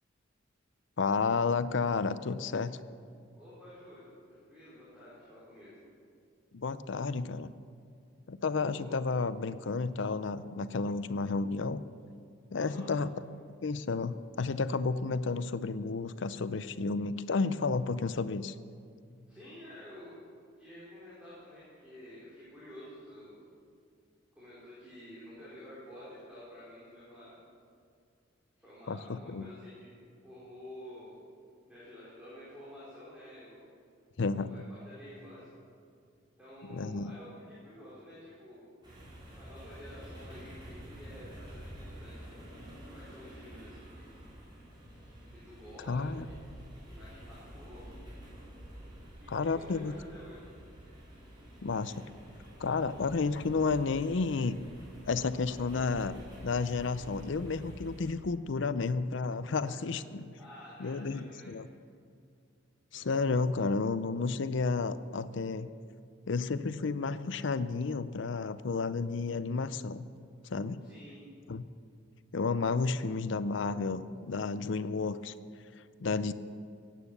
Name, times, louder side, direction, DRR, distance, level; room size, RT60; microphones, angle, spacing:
voice 1, 1.0-2.8 6.5-7.5 8.3-11.8 12.5-13.1 13.6-18.5 28.9-29.5 34.2-34.5 36.7-37.1 45.9-46.3 49.3-49.9 51.6-52.0 52.6-54.5 55.1-60.2 60.8-61.7 62.9-65.7 66.3-70.1 70.4-70.8 71.5-71.7 72.3-75.3 76.0-76.3, left 4 dB, 65° left, 14 dB, 0.5 m, -31 dB
voice 2, 3.3-5.7 8.8-8.9 12.6-12.9 19.3-20.1 20.6-23.4 24.3-27.3 28.6-29.9 30.2-31.2 31.7-33.7 34.3-35.5 36.4-38.7 39.3-42.4 42.9-44.1 45.3-46.2 46.8-47.9 49.2-50.4 59.6-60.0 60.4-61.5 70.8-71.3, left 1 dB, 5° right, -11 dB, 4.0 m, -50 dB
sound 1, 38.8-58.1, equal, 25° right, 4.7 m, -49 dB
16.5 x 9.2 x 6.7 m, 2.3 s
head